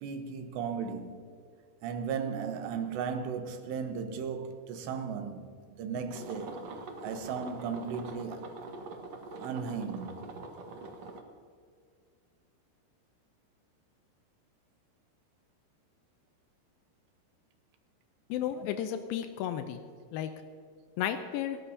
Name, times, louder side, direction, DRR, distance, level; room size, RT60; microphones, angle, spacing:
voice 1, 0.0-1.2 1.8-6.6 7.0-8.5 9.4-10.3, right 6 dB, 90° right, 3.3 m, -36 dB
sound 1, 6.1-11.2, right 3 dB, 60° right, 1.8 m, -44 dB
voice 2, 18.3-19.8 20.1-20.3 21.0-21.6, left 10 dB, 85° left, 2.1 m, -33 dB
26.5 x 13.0 x 2.8 m
omnidirectional pair, 4.8 m